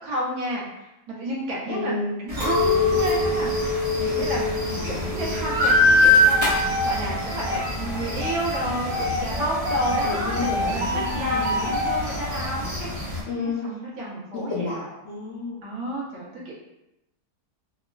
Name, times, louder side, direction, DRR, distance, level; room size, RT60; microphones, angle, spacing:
voice 1, 0.0-6.6 6.8-14.8 15.6-16.5, right 1 dB, 70° right, -4 dB, 1.2 m, -31 dB
voice 2, 1.7-2.2 4.7-5.4 10.0-11.8 13.3-13.7 14.3-15.6, left 3 dB, 65° left, -7 dB, 0.6 m, -31 dB
sound 1, 2.3-13.2, equal, 30° right, 0.7 m, -31 dB
Chink clink, 2.4-7.7, left 4 dB, 45° right, 1.6 m, -27 dB
sound 2, 5.4-12.5, left 1 dB, 90° right, 0.4 m, -23 dB
3.4 x 2.2 x 2.2 m, 0.90 s
omnidirectional pair, 1.7 m